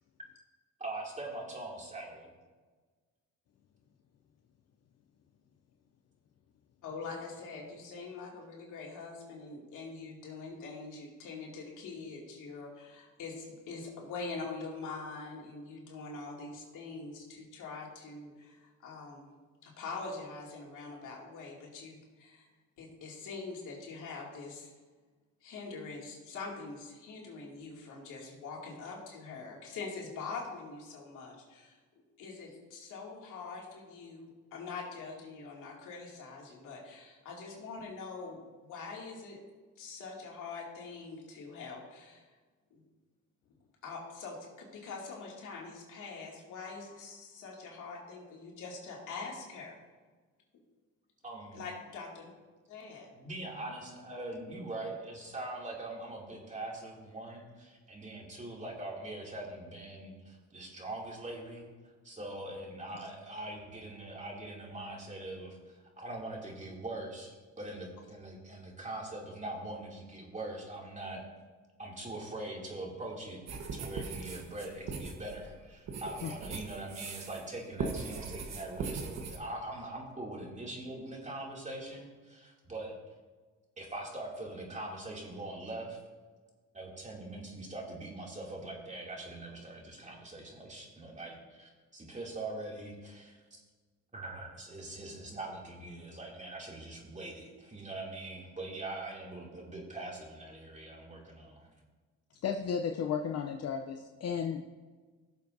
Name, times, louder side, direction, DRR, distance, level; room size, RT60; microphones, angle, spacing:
voice 1, 0.8-2.3 51.2-51.6 53.1-61.7 62.0-71.2 71.8-73.4 73.7-82.9 83.8-86.0 86.7-93.6 94.1-101.7, right 2 dB, 25° right, -2 dB, 2.7 m, -42 dB
voice 2, 6.8-19.3 19.6-22.5 22.8-24.7 25.4-31.8 32.2-39.4 39.8-42.2 42.7-42.8 43.8-49.8 51.5-52.3 52.7-53.1, left 4 dB, 85° left, -2 dB, 2.5 m, -44 dB
sound 1, 73.5-77.5 77.8-79.4, right 4 dB, 60° right, 1.3 m, -40 dB
voice 3, 102.4-104.6, left 7 dB, 55° left, 4 dB, 0.6 m, -33 dB
17.0 x 7.1 x 2.7 m, 1.4 s
cardioid pair, 90°, 30 cm